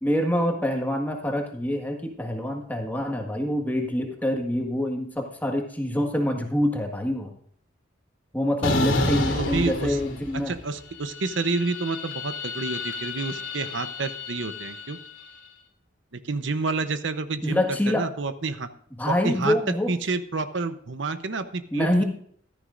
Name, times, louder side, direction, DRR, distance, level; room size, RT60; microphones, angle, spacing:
voice 1, 0.0-7.3 8.3-10.5 17.4-18.1 19.0-19.9 21.7-22.0, left 1 dB, 10° left, 3 dB, 1.5 m, -26 dB
sound 1, 8.6-10.6 10.9-15.2, left 2 dB, 75° left, 2.9 m, -30 dB
voice 2, 9.3-10.0 10.5-15.0 16.1-18.7 19.1-22.0, right 3 dB, 70° right, 10 dB, 0.8 m, -29 dB
15.0 x 13.0 x 2.5 m, 0.62 s
head